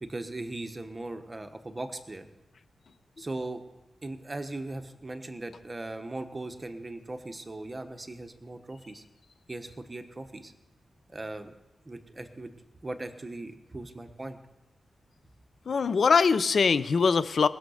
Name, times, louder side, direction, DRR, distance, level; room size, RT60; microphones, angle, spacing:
voice 1, 0.0-2.3 3.2-3.6 4.0-9.0 9.5-10.5 11.1-11.5 11.9-12.5 12.8-14.4, right 2 dB, 20° right, 7 dB, 1.2 m, -39 dB
voice 2, 15.7-17.5, left 5 dB, 55° left, 15 dB, 0.6 m, -22 dB
19.5 x 6.6 x 6.5 m, 0.99 s
wide cardioid pair, 130°, 0 cm